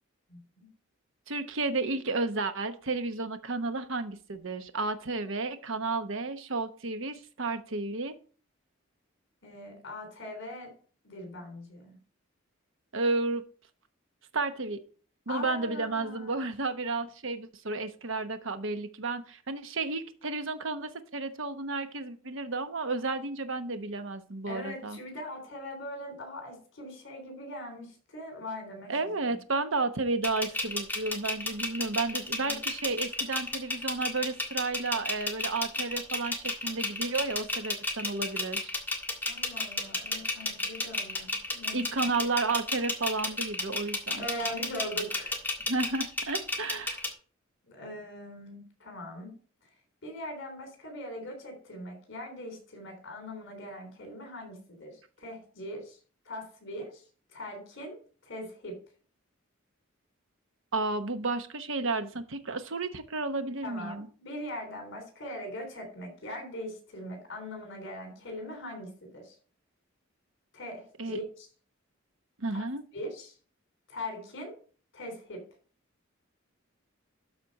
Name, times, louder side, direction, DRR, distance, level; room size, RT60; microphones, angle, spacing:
voice 1, 0.3-0.7 9.4-10.7 11.0-11.9 15.3-16.4 24.5-28.9 29.2-29.3 32.4-32.6 39.3-42.1 44.2-45.4 47.7-49.3 50.0-56.0 56.2-57.0 57.3-58.7 63.6-69.3 70.5-71.5 72.5-72.6 72.9-73.3 73.9-74.5 74.9-75.4, left 1 dB, 60° left, 4 dB, 3.5 m, -41 dB
voice 2, 1.3-8.1 12.9-13.4 14.3-14.8 15.3-25.0 28.9-38.7 41.7-44.2 45.7-47.0 60.7-64.1 71.0-71.2 72.4-72.8, right 3 dB, 65° right, 9 dB, 1.0 m, -32 dB
sound 1, 30.2-47.1, left 2 dB, 10° left, 1.7 m, -32 dB
12.5 x 4.4 x 5.3 m, 0.41 s
head